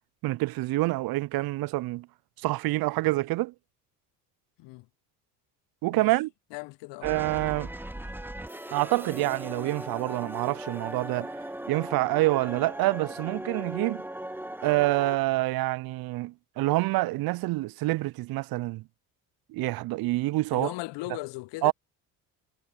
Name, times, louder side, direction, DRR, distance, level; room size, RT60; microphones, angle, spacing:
voice 1, 0.2-2.1 2.4-3.5 5.8-6.3 7.0-7.7 8.7-11.4 11.7-14.0 14.6-18.8 19.5-20.7 21.6-21.7, right 19 dB, 50° right, 0.5 m, -27 dB
voice 2, 6.5-7.1 13.4-13.5 20.5-21.7, left 22 dB, 65° left, 0.9 m, -38 dB
sound 1, 7.0-15.2, right 1 dB, 5° right, 1.5 m, -38 dB
hypercardioid pair, 55°, 46 cm